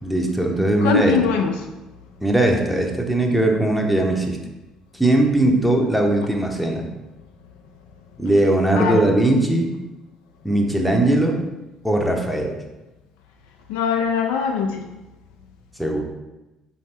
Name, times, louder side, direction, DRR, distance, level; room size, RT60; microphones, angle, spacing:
voice 1, 0.0-1.2 2.2-4.4 4.9-6.9 8.2-9.7 10.4-11.4 11.8-12.6 15.8-16.0, right 1 dB, ahead, 1 dB, 0.7 m, -19 dB
voice 2, 0.8-1.5 8.8-9.0 13.7-14.9, left 6 dB, 70° left, 4 dB, 0.3 m, -21 dB
4.9 x 2.8 x 3.3 m, 1.0 s
figure-of-eight pair, 50°, 2 cm